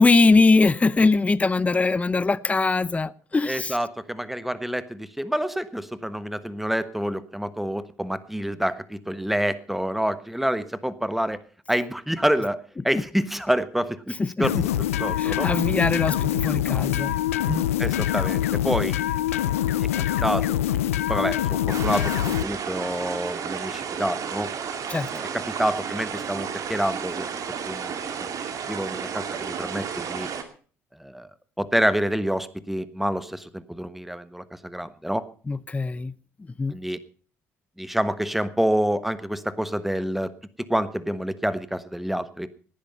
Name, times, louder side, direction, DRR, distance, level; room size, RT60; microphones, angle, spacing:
voice 1, 0.0-3.7 14.2-14.6 15.2-17.1 17.5-17.6 24.9-25.1 35.5-36.1 36.6-36.8, left 3 dB, 20° left, 0.6 m, -21 dB
voice 2, 3.4-11.4 11.7-15.5 17.8-19.0 19.8-20.6 21.1-24.5 25.1-27.3 27.6-28.3 28.7-30.3 31.0-31.3 31.6-35.3 36.7-37.0 37.8-40.3 40.6-42.5, equal, ahead, 1.3 m, -27 dB
sound 1, 14.4-22.4, left 12 dB, 90° left, 0.6 m, -24 dB
sound 2, 21.7-30.4, right 7 dB, 50° right, 2.3 m, -32 dB
18.0 x 10.0 x 5.4 m
hypercardioid pair, 60°, 7 cm